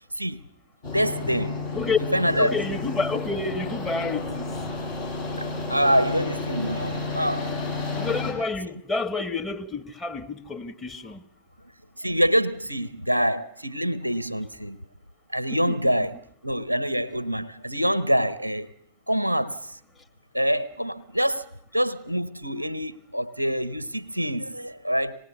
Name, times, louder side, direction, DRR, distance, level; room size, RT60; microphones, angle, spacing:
sound 1, 0.8-8.3, left 3 dB, 60° left, 7.6 m, -31 dB
voice 1, 0.9-1.6 2.0-2.6 5.4-7.5 12.0-14.8 15.3-18.7 19.1-19.8 20.3-21.5 21.7-25.2, equal, 85° right, 0.8 m, -25 dB
voice 2, 2.4-4.5 8.0-11.2 15.7-15.9, left 4 dB, 15° left, 1.8 m, -29 dB
26.0 x 19.0 x 6.9 m
figure-of-eight pair, 90°, 0 cm